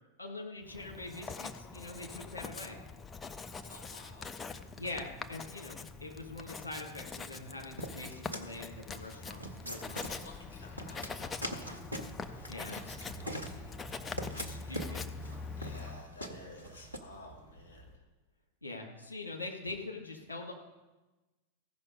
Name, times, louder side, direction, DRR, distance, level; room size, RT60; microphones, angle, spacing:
voice 1, 0.2-2.8 4.8-10.1 12.5-12.7 14.3-15.1 18.6-20.5, left 2 dB, 75° left, 1 dB, 1.9 m, -43 dB
Writing, 0.7-16.0, left 4 dB, 20° left, 0.5 m, -44 dB
voice 2, 2.1-2.7 3.6-4.4 9.9-11.7 12.1-13.8 15.6-18.1, left 2 dB, 60° left, -2 dB, 3.3 m, -53 dB
sound 1, 7.8-17.0, equal, 90° right, 0.8 m, -43 dB
Bark, 10.9-18.0, right 3 dB, 45° right, 1.9 m, -54 dB
15.0 x 5.5 x 5.2 m, 1.1 s
figure-of-eight pair, 90°, 0 cm